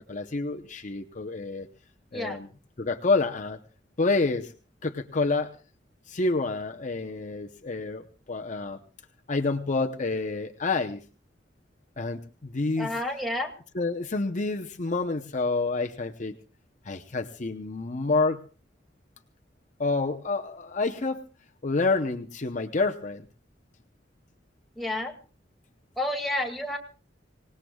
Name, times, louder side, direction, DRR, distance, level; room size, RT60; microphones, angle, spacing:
voice 1, 0.1-1.7 2.1-2.5 2.8-3.6 4.0-4.5 4.8-5.5 6.1-8.8 9.3-11.0 12.0-12.9 13.7-16.4 16.8-18.4 19.8-21.2 21.6-23.3, left 3 dB, 45° left, 6 dB, 0.8 m, -28 dB
voice 2, 12.8-13.5 24.8-25.1 26.0-26.8, left 1 dB, ahead, 0 dB, 2.2 m, -30 dB
26.0 x 18.5 x 2.3 m, 0.35 s
head